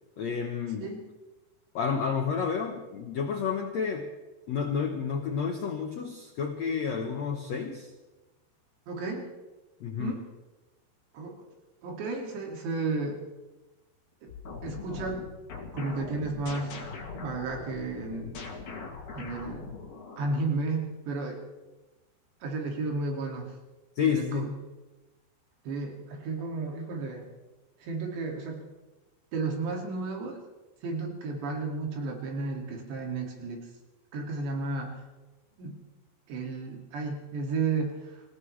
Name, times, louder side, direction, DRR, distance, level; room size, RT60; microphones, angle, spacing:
voice 1, 0.2-0.9 1.7-4.1 4.5-7.9 9.8-10.2 24.0-24.6, left 6 dB, 80° left, 3 dB, 1.5 m, -30 dB
voice 2, 8.9-9.3 10.0-10.3 11.1-11.4 11.8-13.2 14.2-14.3 14.6-15.2 15.7-16.8 17.2-18.4 19.1-19.7 20.2-21.4 22.4-23.5 24.0-24.5 25.7-27.3 27.8-28.7 29.3-30.4 30.8-33.7 34.1-35.0 35.6-35.8 36.3-38.3, right 3 dB, 85° right, 1 dB, 4.6 m, -33 dB
sound 1, 14.3-20.5, left 4 dB, 50° left, 3.5 m, -41 dB
27.0 x 16.5 x 3.3 m, 1.1 s
omnidirectional pair, 4.8 m